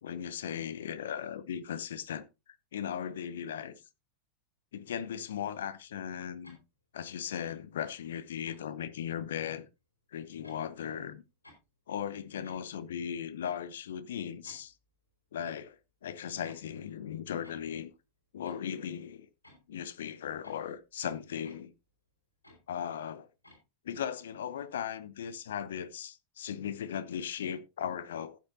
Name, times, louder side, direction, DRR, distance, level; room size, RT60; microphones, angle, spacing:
voice 1, 0.0-2.2 2.7-3.8 4.7-6.6 6.9-9.7 10.1-11.2 11.9-14.7 15.3-17.9 18.3-19.3 19.7-21.7 22.7-23.3 23.8-28.4, left 8 dB, 60° left, 0.9 m, -37 dB
sound 1, 6.4-6.6 7.4-7.6 8.4-8.6 9.4-9.6 10.4-10.6 11.4-11.6 12.4-12.7 13.4-13.6 14.4-14.8 15.4-15.7 16.4-16.8 17.4-17.7 18.4-18.8 19.4-19.7 20.4-20.8 21.4-21.6 22.4-22.6 23.4-23.6, left 1 dB, 80° left, 4.6 m, -57 dB
14.5 x 8.4 x 2.8 m
figure-of-eight pair, 90°, 0 cm